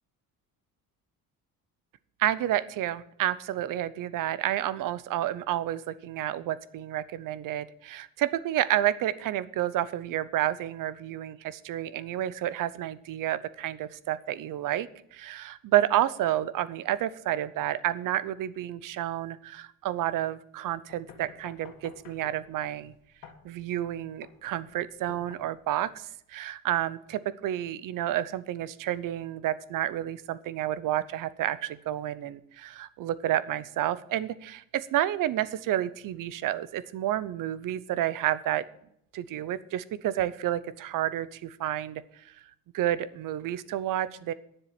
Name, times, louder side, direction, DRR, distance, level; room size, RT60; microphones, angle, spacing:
voice 1, 2.2-22.9 23.4-38.6 39.1-42.3 42.7-44.3, right 12 dB, 65° right, 17 dB, 0.8 m, -30 dB
sound 1, 20.9-25.9, left 7 dB, 70° left, 1.9 m, -51 dB
10.0 x 7.4 x 7.6 m, 0.71 s
cardioid pair, 120°, 35 cm